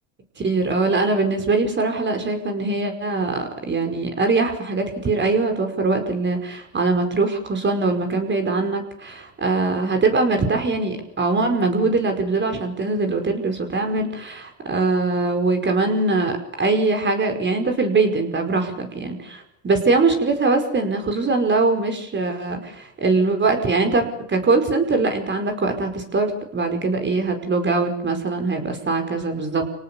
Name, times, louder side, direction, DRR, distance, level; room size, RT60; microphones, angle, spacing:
voice 1, 0.4-29.6, right 3 dB, 25° right, 5 dB, 5.2 m, -22 dB
27.0 x 18.5 x 7.1 m, 0.73 s
supercardioid pair, 105°, 40 cm